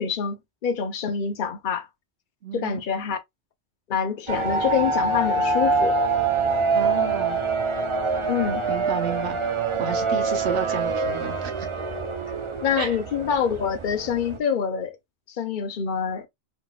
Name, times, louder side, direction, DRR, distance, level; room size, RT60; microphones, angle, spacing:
voice 1, 0.0-1.9 2.5-3.2 3.9-6.0 8.3-8.6 12.6-14.9 15.3-16.3, left 7 dB, 50° left, 0.9 m, -26 dB
voice 2, 2.4-3.1 6.7-7.4 8.7-9.4 9.8-11.7 12.8-13.0, right 6 dB, 70° right, 1.2 m, -31 dB
sound 1, 4.3-14.4, right 4 dB, 35° right, 0.6 m, -25 dB
4.1 x 3.8 x 2.3 m
omnidirectional pair, 1.2 m